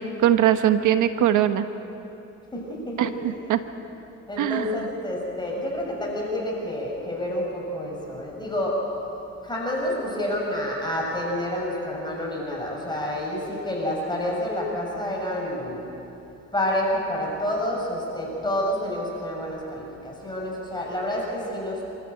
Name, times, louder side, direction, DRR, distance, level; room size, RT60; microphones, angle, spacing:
voice 1, 0.0-1.7 3.0-3.6 4.4-4.8, right 11 dB, 80° right, 10 dB, 1.2 m, -21 dB
voice 2, 2.5-3.6 4.3-8.8 9.4-15.8 16.5-21.8, left 1 dB, 15° left, -3 dB, 6.5 m, -29 dB
27.0 x 13.5 x 8.6 m, 2.9 s
cardioid pair, 90°, 30 cm